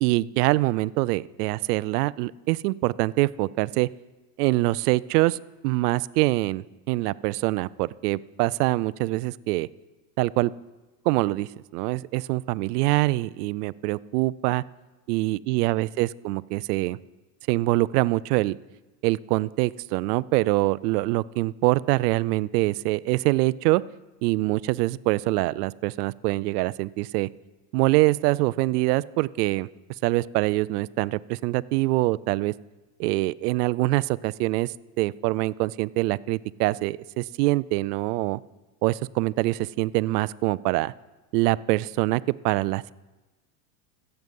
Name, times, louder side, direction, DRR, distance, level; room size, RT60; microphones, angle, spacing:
voice 1, 0.0-3.9 4.4-9.7 10.2-10.5 11.1-14.6 15.1-17.0 17.5-18.6 19.0-23.8 24.2-27.3 27.7-29.7 30.0-32.5 33.0-38.4 38.8-40.9 41.3-42.9, right 20 dB, 75° right, 20 dB, 0.5 m, -24 dB
15.0 x 8.0 x 5.3 m, 1.2 s
supercardioid pair, 120°, 48 cm